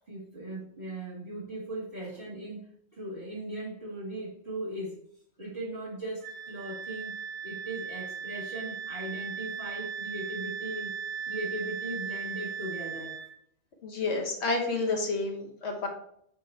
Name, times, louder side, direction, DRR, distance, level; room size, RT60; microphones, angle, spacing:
voice 1, 0.1-5.0 5.4-7.1 7.4-10.9 11.3-13.2, right 1 dB, 55° right, -10 dB, 2.4 m, -38 dB
Wind instrument woodwind instrument, 6.2-13.3, right 7 dB, 85° right, 2.7 m, -37 dB
voice 2, 13.8-15.9, left 3 dB, 80° left, 1 dB, 1.5 m, -30 dB
7.6 x 2.9 x 4.4 m, 0.70 s
omnidirectional pair, 1.1 m